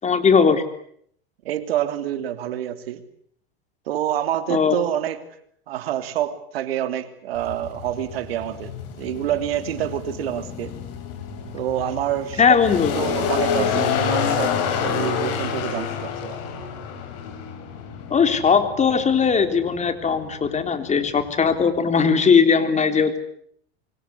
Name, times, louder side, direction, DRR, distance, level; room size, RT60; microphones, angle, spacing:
voice 1, 0.0-0.6 4.5-4.8 12.4-12.9 18.1-23.2, left 6 dB, 25° left, 9 dB, 3.6 m, -19 dB
voice 2, 1.4-3.0 3.9-5.2 5.7-10.8 11.5-12.6 12.9-16.4, right 11 dB, 85° right, 10 dB, 3.0 m, -27 dB
sound 1, 7.4-21.8, left 7 dB, 55° left, 7.6 m, -28 dB
26.5 x 24.0 x 8.3 m, 0.65 s
hypercardioid pair, 110°, 29 cm